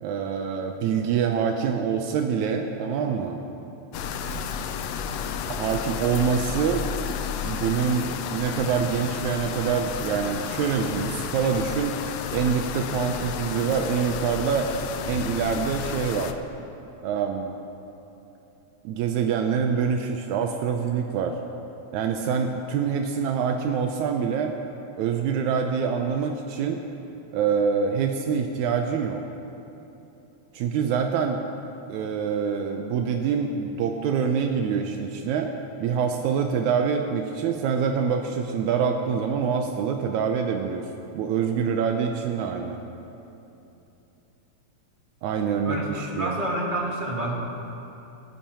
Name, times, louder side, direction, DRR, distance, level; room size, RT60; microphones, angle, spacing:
voice 1, 0.0-3.4 5.5-6.9 7.4-12.0 12.3-14.7 15.0-16.4 17.0-17.5 18.9-21.4 21.9-24.5 25.0-26.8 27.3-29.2 30.5-31.4 31.9-35.5 35.8-40.9 41.2-42.8 45.2-46.4, right 6 dB, 85° right, 4 dB, 2.0 m, -25 dB
sound 1, 3.9-16.3, left 8 dB, 80° left, 1.5 m, -32 dB
voice 2, 45.6-47.4, right 1 dB, 20° right, -4 dB, 1.5 m, -28 dB
26.5 x 10.0 x 2.9 m, 2.9 s
omnidirectional pair, 3.4 m